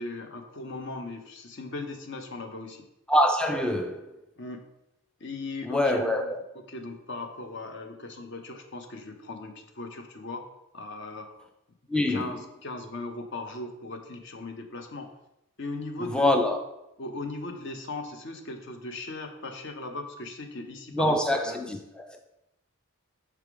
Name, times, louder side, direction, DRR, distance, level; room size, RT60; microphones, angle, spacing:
voice 1, 0.0-2.8 4.4-4.6 5.2-6.3 6.7-10.5 10.7-11.3 12.1-15.1 15.6-16.6 17.0-21.2 21.4-21.6, left 2 dB, 55° left, 0.7 m, -38 dB
voice 2, 3.1-4.1 5.7-6.4 11.9-12.3 16.1-16.6 20.9-22.2, left 1 dB, 5° left, 0.3 m, -25 dB
5.8 x 3.4 x 4.6 m
head